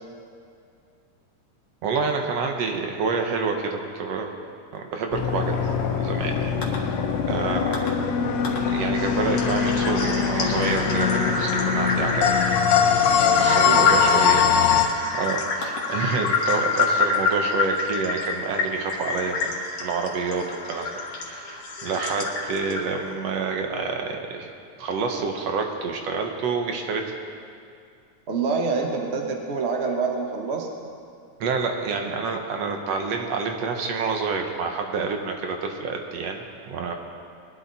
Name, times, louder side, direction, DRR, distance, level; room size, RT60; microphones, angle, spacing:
voice 1, 1.8-4.3 4.7-5.6 5.9-6.5 7.3-7.9 8.7-12.4 13.4-14.5 15.1-24.5 24.8-27.2 31.4-37.0, right 4 dB, 65° right, 3 dB, 2.0 m, -28 dB
sound 1, 5.1-14.9, left 7 dB, 70° left, 2.2 m, -22 dB
sound 2, 6.6-6.8 7.7-7.9 8.4-8.6 8.9-23.1, left 4 dB, 55° left, 2.5 m, -27 dB
voice 2, 13.1-14.0 28.3-30.7, right 4 dB, 40° right, 1 dB, 0.9 m, -27 dB
21.5 x 12.0 x 4.1 m, 2.3 s
omnidirectional pair, 3.4 m